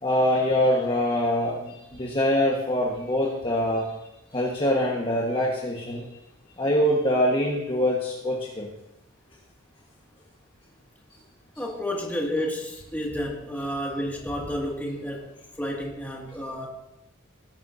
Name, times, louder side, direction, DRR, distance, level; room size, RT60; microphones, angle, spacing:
voice 1, 0.0-3.8 4.3-6.0 6.6-8.7, left 1 dB, 25° left, -3 dB, 1.4 m, -24 dB
voice 2, 11.6-15.3 15.6-16.7, equal, 10° left, -2 dB, 2.2 m, -30 dB
19.5 x 10.5 x 2.7 m, 0.92 s
head